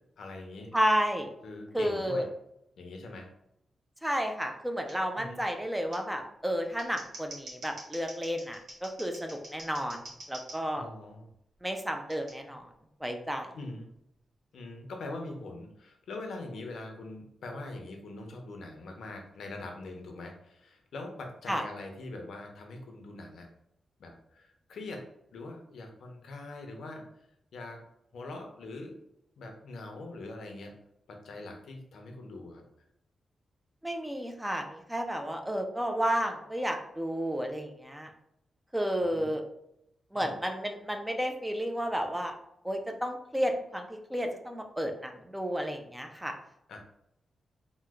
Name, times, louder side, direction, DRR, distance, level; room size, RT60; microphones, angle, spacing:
voice 1, 0.2-0.7 1.4-2.3 2.8-3.3 5.1-5.4 10.8-11.3 13.5-13.9 14.5-23.5 24.0-27.1 27.5-27.8 28.1-29.0 29.4-30.7 31.1-32.6 39.1-39.3 40.1-40.3 46.7-46.8, left 2 dB, 85° left, 3 dB, 0.6 m, -43 dB
voice 2, 0.7-1.3 1.7-2.2 4.0-10.9 11.6-12.7 13.0-13.5 21.5-21.6 33.8-38.1 38.7-39.4 40.1-42.3 42.6-46.3, equal, 5° right, 4 dB, 0.3 m, -32 dB
Scissors, 4.9-5.0 5.9-6.0 6.6-10.6 12.1-12.3, right 2 dB, 85° right, 1.2 m, -46 dB
3.0 x 2.1 x 3.5 m, 0.79 s
wide cardioid pair, 170°, 0 cm